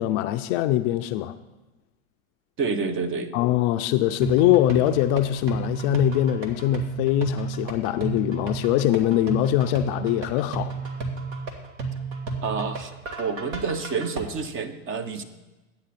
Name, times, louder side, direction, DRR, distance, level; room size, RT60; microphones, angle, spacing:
voice 1, 0.0-1.3 3.3-10.7, left 14 dB, 45° left, 9 dB, 0.5 m, -23 dB
voice 2, 2.6-3.3 12.4-12.9 13.2-15.2, right 5 dB, 30° right, 10 dB, 0.9 m, -28 dB
sound 1, 4.2-14.2, right 4 dB, 60° right, 1.8 m, -32 dB
11.5 x 8.6 x 4.2 m, 1.1 s
hypercardioid pair, 105°, 43 cm